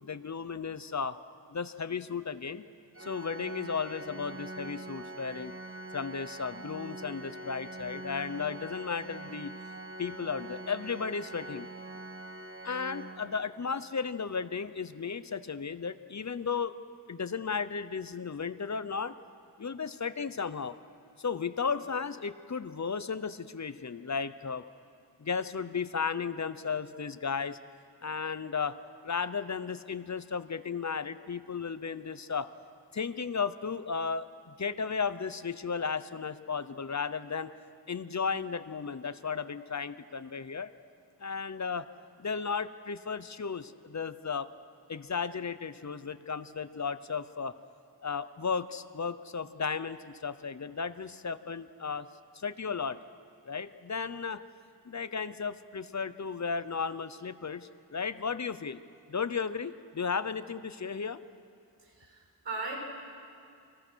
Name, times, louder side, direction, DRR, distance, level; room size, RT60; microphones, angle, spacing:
voice 1, 0.0-1.2 1.5-2.6 3.0-5.5 5.9-9.5 10.0-11.7 12.6-16.8 17.1-19.1 19.6-20.8 21.2-24.6 25.2-27.6 28.0-28.8 29.0-32.5 32.9-37.5 37.9-40.7 41.2-41.9 42.2-44.5 44.9-47.5 48.0-52.1 52.3-53.0 53.4-54.4 54.8-58.8 59.1-61.2, left 5 dB, 40° left, 13 dB, 0.8 m, -34 dB
Organ, 2.9-13.8, right 2 dB, 30° right, 1.5 m, -44 dB
voice 2, 61.8-62.7, right 3 dB, 85° right, -1 dB, 6.0 m, -38 dB
29.5 x 23.5 x 6.3 m, 2.4 s
wide cardioid pair, 100°, 42 cm